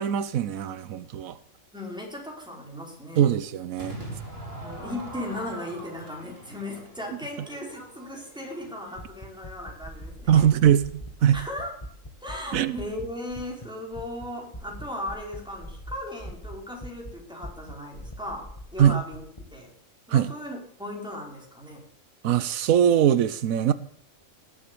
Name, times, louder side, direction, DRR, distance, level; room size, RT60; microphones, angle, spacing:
voice 1, 0.0-1.4 3.2-4.0 10.3-11.4 12.5-12.8 18.8-19.0 20.1-20.3 22.2-23.7, right 9 dB, 90° right, 1.2 m, -21 dB
voice 2, 1.7-3.4 4.5-10.4 11.3-11.7 12.2-19.2 19.5-19.7 20.1-21.8, left 1 dB, 5° right, 4.9 m, -37 dB
Crowd / Fireworks, 3.8-9.0, right 2 dB, 45° right, 5.1 m, -41 dB
sound 1, 9.0-13.7 13.9-14.3 14.5-17.1 17.4-19.4, equal, 25° left, 1.9 m, -40 dB
19.0 x 7.8 x 7.0 m
omnidirectional pair, 1.4 m